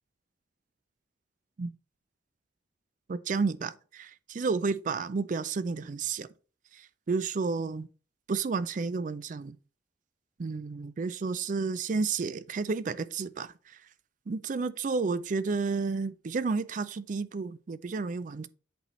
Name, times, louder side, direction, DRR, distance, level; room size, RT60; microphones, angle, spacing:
voice 1, 3.1-6.3 6.7-6.8 7.1-7.9 8.3-9.6 10.4-13.5 14.3-18.5, right 4 dB, 45° right, 0.4 m, -31 dB
8.1 x 4.4 x 3.1 m
head